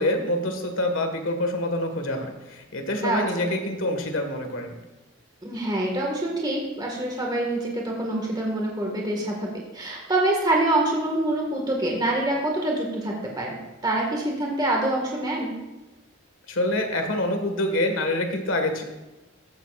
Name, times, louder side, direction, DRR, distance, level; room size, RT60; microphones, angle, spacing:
voice 1, 0.0-4.7 16.5-18.8, left 1 dB, 70° left, 5 dB, 1.8 m, -26 dB
voice 2, 3.0-3.5 5.4-15.5, right 1 dB, 20° right, -1 dB, 1.8 m, -26 dB
15.0 x 12.5 x 2.5 m, 1.1 s
head